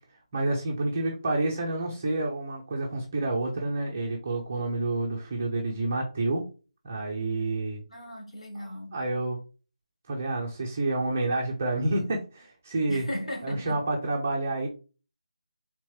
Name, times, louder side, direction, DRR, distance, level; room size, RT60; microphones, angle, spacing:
voice 1, 0.3-6.4 6.8-7.8 8.5-9.4 10.1-13.1 13.4-14.7, right 2 dB, 15° right, 0.6 m, -29 dB
voice 2, 7.9-9.0 12.9-13.7, left 1 dB, 60° left, 1.9 m, -36 dB
3.6 x 3.0 x 4.6 m
figure-of-eight pair, 180°, 4 cm